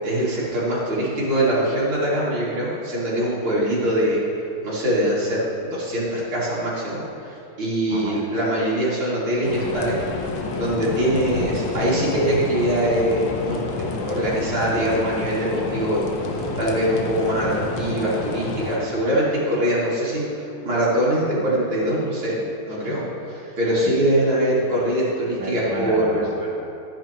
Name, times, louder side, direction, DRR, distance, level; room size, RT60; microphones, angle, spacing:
voice 1, 0.0-4.2 4.6-10.0 10.5-23.0 23.6-26.3, right 1 dB, 85° right, -8 dB, 3.4 m, -23 dB
sound 1, 9.4-18.8, left 3 dB, 70° left, 1.6 m, -29 dB
voice 2, 22.7-23.6 23.8-23.9 25.4-26.7, right 1 dB, 10° right, -7 dB, 1.4 m, -34 dB
13.5 x 10.0 x 2.9 m, 2.6 s
omnidirectional pair, 2.3 m